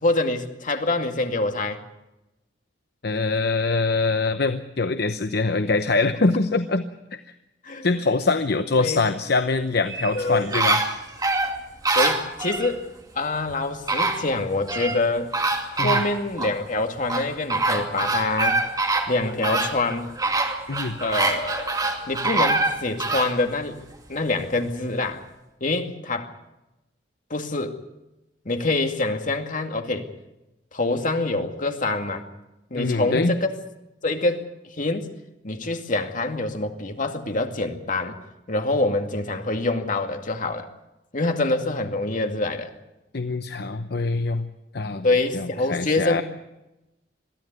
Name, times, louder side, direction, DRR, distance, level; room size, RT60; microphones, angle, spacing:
voice 1, 0.0-1.8 7.6-7.9 8.8-9.0 10.1-10.5 11.9-12.8 13.2-15.3 15.7-18.6 19.1-20.1 21.0-21.8 22.1-23.8 24.1-25.3 25.6-26.3 27.3-27.8 28.5-30.1 30.7-32.3 32.7-33.5 34.0-34.5 34.8-35.0 35.4-38.2 38.5-40.7 41.1-42.7 45.0-46.2, left 2 dB, 45° left, 5 dB, 2.3 m, -25 dB
voice 2, 3.0-6.8 7.1-7.2 7.8-10.8 15.8-16.0 20.7-21.0 32.8-33.3 43.1-44.4 44.7-45.1 45.3-46.2, left 3 dB, 65° left, 9 dB, 0.9 m, -23 dB
sound 1, 9.9-12.7 13.5-13.6 13.9-15.0 15.3-16.5 17.1-23.3 23.8-23.9, right 2 dB, 20° right, 2.5 m, -24 dB
22.5 x 14.5 x 9.6 m, 0.95 s
head